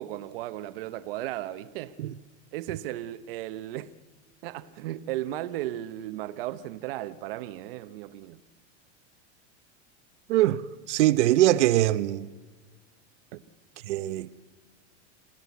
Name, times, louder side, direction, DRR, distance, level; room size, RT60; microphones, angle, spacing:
voice 1, 0.0-2.0 2.5-3.9 4.4-8.4 13.3-13.4, right 14 dB, 55° right, 0.8 m, -35 dB
voice 2, 10.3-10.6 10.9-12.3 13.9-14.3, right 14 dB, 90° right, 0.9 m, -22 dB
27.0 x 16.0 x 8.3 m
supercardioid pair, 180°, 34 cm